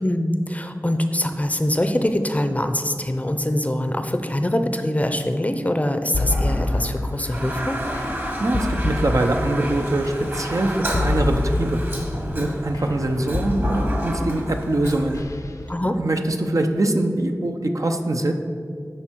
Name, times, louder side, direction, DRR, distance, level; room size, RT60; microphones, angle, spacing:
voice 1, 0.0-7.8 15.7-16.0, left 1 dB, 25° left, 7 dB, 0.6 m, -23 dB
sound 1, 6.1-15.7, left 2 dB, 65° left, 0.6 m, -27 dB
Toilet flush, 6.1-15.2, right 1 dB, 40° right, 1.3 m, -31 dB
voice 2, 8.4-11.8 12.3-15.2 15.9-18.3, right 1 dB, 65° right, 4 dB, 0.6 m, -23 dB
12.0 x 4.4 x 4.5 m, 2.3 s
wide cardioid pair, 55°, 6 cm